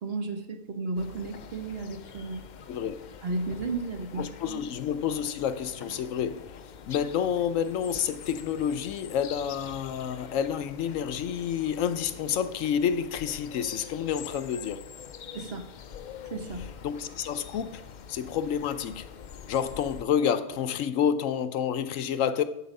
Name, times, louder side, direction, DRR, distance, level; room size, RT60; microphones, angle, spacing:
voice 1, 0.0-2.4 3.2-4.6 15.3-15.7 16.3-16.7, right 3 dB, 55° right, 1.2 m, -33 dB
sound 1, 1.0-20.0, left 7 dB, 60° left, 0.5 m, -45 dB
voice 2, 2.7-3.0 4.2-14.8 16.8-17.8 18.1-19.1 19.5-22.4, left 8 dB, 85° left, 1.1 m, -29 dB
8.3 x 7.6 x 5.3 m
omnidirectional pair, 1.3 m